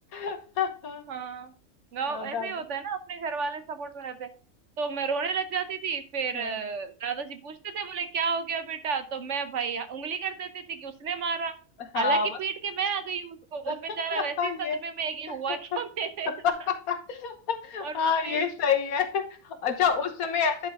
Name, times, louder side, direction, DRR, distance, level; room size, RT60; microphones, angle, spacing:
voice 1, 0.1-1.1 2.1-2.5 6.3-6.6 11.9-12.4 13.7-13.8 14.1-14.8 15.5-15.6 16.3-20.7, left 6 dB, 80° left, 6 dB, 1.6 m, -28 dB
voice 2, 1.1-1.5 1.9-4.3 4.8-11.5 11.9-16.3 17.8-18.4, right 5 dB, 60° right, 10 dB, 1.1 m, -32 dB
10.5 x 4.6 x 3.6 m, 0.39 s
omnidirectional pair, 1.5 m